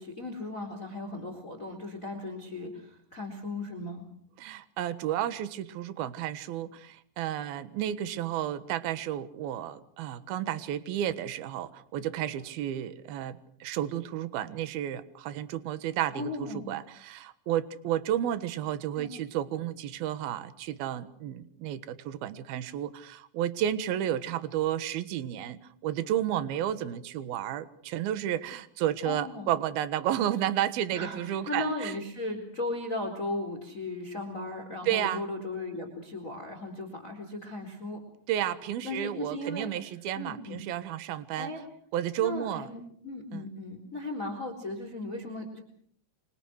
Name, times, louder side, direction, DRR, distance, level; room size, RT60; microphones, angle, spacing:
voice 1, 0.0-4.0 16.1-16.7 19.0-19.1 29.0-29.5 30.9-38.0 38.8-39.7 40.2-40.6 41.4-41.6 42.2-45.6, left 2 dB, 15° left, 6 dB, 3.8 m, -36 dB
voice 2, 4.4-31.9 34.8-35.2 38.3-41.5 41.9-42.7 43.3-43.5, right 11 dB, 65° right, 12 dB, 2.7 m, -32 dB
27.5 x 26.0 x 6.4 m, 0.63 s
omnidirectional pair, 5.8 m